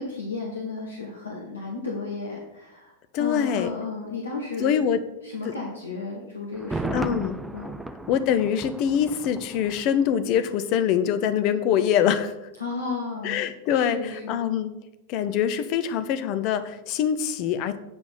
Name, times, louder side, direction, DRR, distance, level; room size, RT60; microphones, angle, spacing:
voice 1, 0.0-2.9 3.2-4.9 5.2-7.2 7.5-7.8 12.6-13.4 13.7-14.4, left 3 dB, 75° left, -2 dB, 1.4 m, -33 dB
voice 2, 3.1-3.7 4.6-5.0 5.4-5.5 6.9-7.4 8.1-12.5 13.2-14.7 15.1-17.8, left 9 dB, 40° left, 11 dB, 0.6 m, -24 dB
Thunder, 6.5-10.5 10.7-10.8, right 2 dB, 5° right, 0.5 m, -35 dB
8.7 x 4.9 x 5.6 m, 0.91 s
figure-of-eight pair, 90°, 0 cm